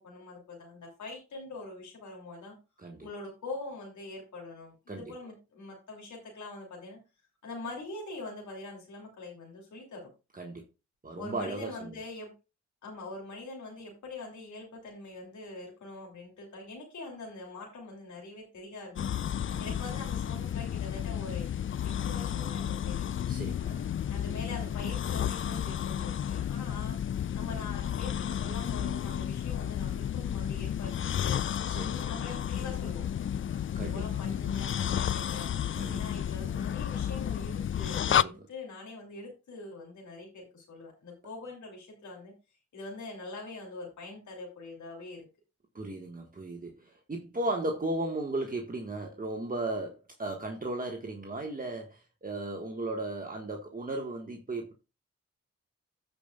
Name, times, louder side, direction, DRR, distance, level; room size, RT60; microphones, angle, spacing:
voice 1, 0.0-2.6 3.0-7.0 7.4-10.1 11.2-12.3 12.8-21.5 21.8-23.1 24.1-27.0 27.3-30.9 31.2-31.4 31.7-33.0 33.7-35.5 35.9-42.3 42.7-45.2, left 2 dB, 80° left, 2.8 m, -43 dB
voice 2, 2.8-3.1 4.9-5.1 10.3-10.6 11.0-12.0 19.5-19.7 23.3-23.9 31.7-31.9 33.7-34.2 35.7-36.1 38.1-38.5 45.7-54.7, right 2 dB, 30° right, 1.5 m, -36 dB
sound 1, 19.0-38.2, left 9 dB, 45° left, 0.4 m, -32 dB
15.5 x 5.3 x 2.3 m
cardioid pair, 55°, 29 cm